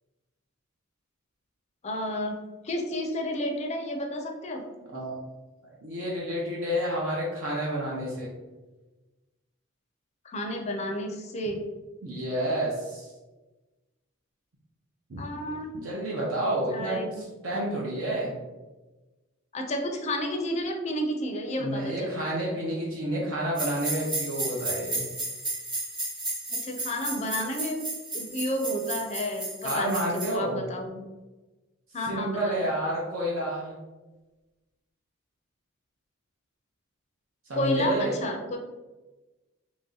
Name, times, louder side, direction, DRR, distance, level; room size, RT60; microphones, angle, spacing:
voice 1, 1.8-2.4 2.6-4.6 10.2-11.6 15.2-15.7 16.7-17.3 19.5-22.2 26.5-27.8 28.1-31.0 31.9-32.7 37.5-38.6, equal, 30° left, 3 dB, 0.4 m, -31 dB
voice 2, 5.8-8.3 12.0-13.1 15.1-15.2 15.7-17.0 17.4-18.4 21.6-25.0 29.6-30.6 32.1-33.7 37.5-38.2, right 1 dB, 70° right, -5 dB, 0.7 m, -29 dB
sound 1, 23.6-30.3, right 2 dB, 25° right, 1.1 m, -33 dB
3.0 x 2.7 x 3.8 m, 1.2 s
head